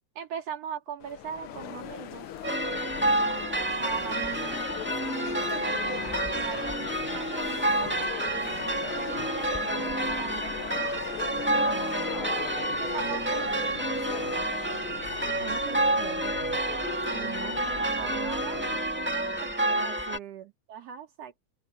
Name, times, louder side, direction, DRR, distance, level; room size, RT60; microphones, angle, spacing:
voice 1, 0.2-2.3 3.8-5.7 6.3-11.1 11.5-12.1 12.6-14.8 17.6-20.0 20.7-21.4, right 8 dB, 50° right, 3.9 m, -41 dB
sound 1, 1.0-18.8, left 10 dB, 75° left, 1.2 m, -39 dB
sound 2, 2.4-20.2, right 1 dB, 5° right, 1.2 m, -29 dB
voice 2, 11.5-12.3 15.3-16.4 17.1-18.4 19.6-20.5, right 10 dB, 75° right, 3.1 m, -42 dB
open air
omnidirectional pair, 3.7 m